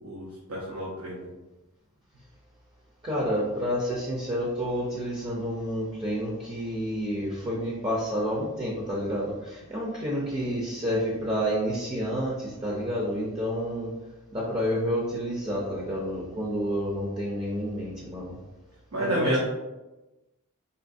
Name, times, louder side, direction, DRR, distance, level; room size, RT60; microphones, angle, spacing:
voice 1, 0.0-1.3 18.9-19.4, right 1 dB, 70° right, -5 dB, 0.8 m, -30 dB
voice 2, 3.0-13.9 14.3-18.4 19.0-19.4, equal, 25° right, -5 dB, 0.6 m, -29 dB
4.3 x 3.1 x 2.6 m, 1.1 s
head